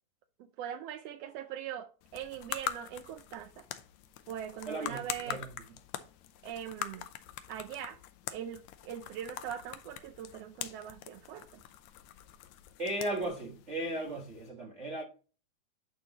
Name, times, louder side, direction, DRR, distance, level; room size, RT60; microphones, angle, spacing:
voice 1, 0.4-3.7 4.3-5.4 6.4-7.1 7.5-8.0 8.3-11.6, right 9 dB, 90° right, 1.3 m, -41 dB
sound 1, 2.0-14.5, left 11 dB, 80° left, 1.8 m, -44 dB
voice 2, 4.7-5.5 12.8-15.0, right 1 dB, 70° right, 0.6 m, -36 dB
11.0 x 3.9 x 2.9 m
omnidirectional pair, 3.4 m